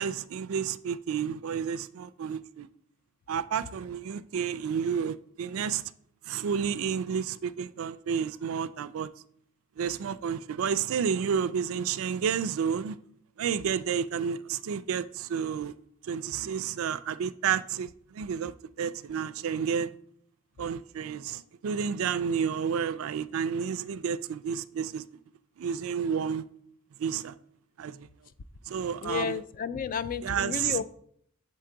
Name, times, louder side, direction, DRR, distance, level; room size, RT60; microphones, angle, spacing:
voice 1, 0.0-2.7 3.3-5.8 6.2-9.1 9.8-13.0 13.4-15.7 16.0-20.0 20.6-25.2 25.6-26.4 27.0-27.3 27.8-28.1 28.7-29.4 30.2-30.8, right 7 dB, 70° right, 0.3 m, -31 dB
voice 2, 29.0-30.9, left 7 dB, 40° left, 0.3 m, -32 dB
7.4 x 3.8 x 4.5 m
head